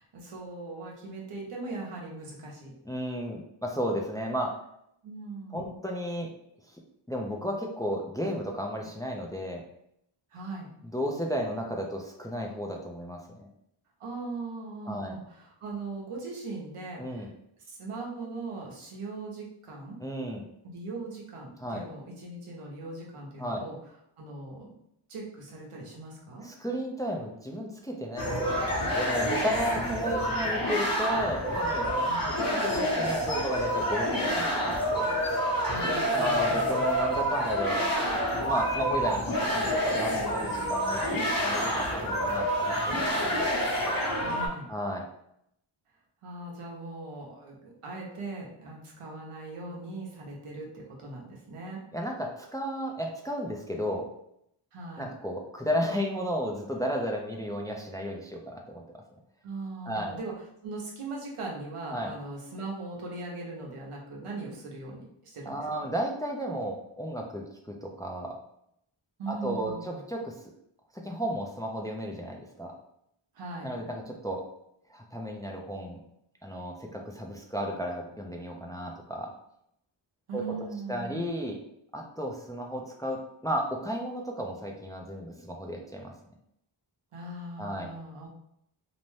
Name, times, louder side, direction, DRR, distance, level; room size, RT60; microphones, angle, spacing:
voice 1, 0.0-2.7 5.0-5.8 10.3-10.7 14.0-17.3 17.7-20.0 20.6-23.8 24.2-24.7 25.1-26.4 29.7-30.1 32.0-32.3 35.7-36.8 44.1-44.7 46.2-51.8 54.7-55.1 59.4-60.3 60.6-65.7 69.2-70.0 73.3-73.7 80.3-81.2 87.1-88.3, right 3 dB, 90° right, -2 dB, 0.9 m, -40 dB
voice 2, 2.9-4.6 5.5-6.3 6.6-6.8 7.1-9.6 10.8-13.4 14.9-15.2 17.0-17.3 20.0-20.5 21.6-21.8 23.4-23.6 26.4-32.1 32.4-35.2 36.1-37.9 38.4-43.5 44.7-45.0 51.9-54.1 55.0-59.0 59.9-60.2 61.9-62.1 65.5-68.4 69.3-70.3 70.9-72.7 73.6-74.4 74.9-76.0 76.4-79.3 80.3-80.4 80.9-81.6 81.9-86.1 87.6-87.9, equal, 10° left, 1 dB, 0.4 m, -33 dB
sound 1, 28.2-44.5, equal, 45° left, 1.0 m, -28 dB
2.7 x 2.1 x 3.1 m, 0.75 s
cardioid pair, 50°, 50 cm